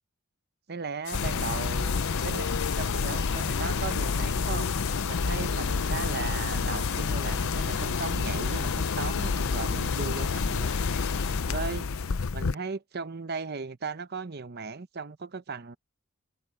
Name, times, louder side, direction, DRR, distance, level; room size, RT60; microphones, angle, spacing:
voice 1, 0.7-2.5 2.8-4.7 5.1-10.8 11.5-11.9 12.3-15.8, right 4 dB, 50° right, 0.8 m, -37 dB
sound 1, 1.0-11.4, left 10 dB, 55° left, 6.2 m, -40 dB
sound 2, 1.1-12.5, left 4 dB, 75° left, 0.6 m, -29 dB
head